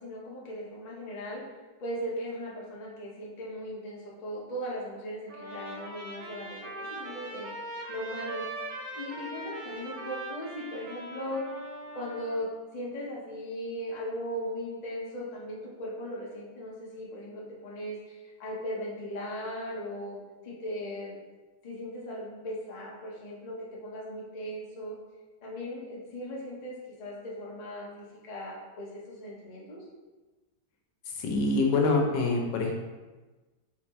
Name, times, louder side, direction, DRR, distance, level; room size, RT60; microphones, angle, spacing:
voice 1, 0.0-1.4 1.8-7.5 7.9-8.4 8.9-11.5 11.9-12.5 12.7-21.2 21.6-23.5 23.8-25.0 25.4-29.8, equal, 35° left, -5 dB, 0.7 m, -38 dB
Trumpet, 5.3-12.4, right 1 dB, 60° right, 1.2 m, -41 dB
voice 2, 31.1-32.7, left 3 dB, 85° left, 1 dB, 1.3 m, -25 dB
3.9 x 3.5 x 3.0 m, 1.2 s
omnidirectional pair, 1.9 m